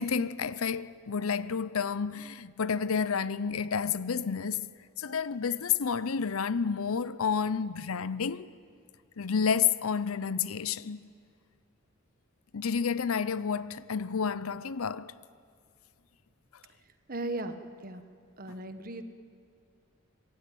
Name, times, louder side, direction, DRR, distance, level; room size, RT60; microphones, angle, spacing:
voice 1, 0.0-4.7 5.0-8.5 9.2-11.1 12.5-15.1, left 6 dB, 75° left, 0.6 m, -30 dB
voice 2, 17.1-18.0 18.4-19.0, right 2 dB, 40° right, 1.4 m, -37 dB
25.0 x 21.5 x 9.2 m
head